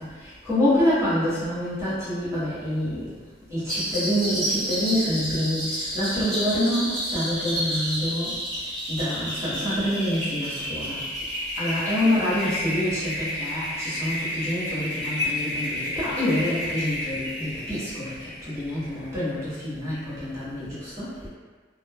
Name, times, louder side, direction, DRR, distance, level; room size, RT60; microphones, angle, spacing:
voice 1, 0.4-3.2 3.5-21.3, left 1 dB, 15° right, -12 dB, 0.9 m, -27 dB
sound 1, 3.7-18.9, equal, 5° left, 1.2 m, -30 dB
3.0 x 2.0 x 2.2 m, 1.4 s
head